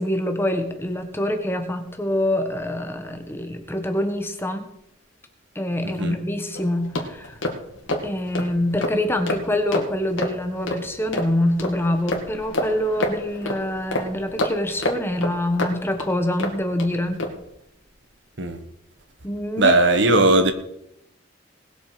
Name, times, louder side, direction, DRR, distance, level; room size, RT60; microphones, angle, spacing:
voice 1, 0.0-4.7 5.5-7.4 8.0-17.3 19.2-19.7 20.0-20.2, left 1 dB, 10° left, 1.4 m, -25 dB
voice 2, 5.8-6.2 18.4-18.6 19.6-20.5, right 2 dB, 65° right, 1.5 m, -18 dB
sound 1, 6.5-16.9 17.2-17.4, left 1 dB, 85° left, 2.6 m, -29 dB
20.0 x 7.4 x 5.1 m
head